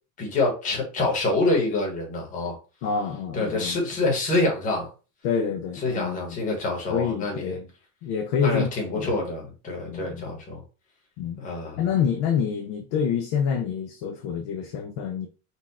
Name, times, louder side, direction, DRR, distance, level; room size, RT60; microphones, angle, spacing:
voice 1, 0.2-2.5 3.3-4.9 5.8-7.5 8.4-10.6 11.4-11.8, left 2 dB, 20° left, 1.2 m, -26 dB
voice 2, 2.8-3.8 5.2-6.4 6.9-7.7 8.0-8.7 8.9-9.1 9.9-10.3 11.2-11.4 11.8-15.3, left 7 dB, 40° left, 0.4 m, -27 dB
4.2 x 2.3 x 4.2 m
cardioid pair, 180°, 41 cm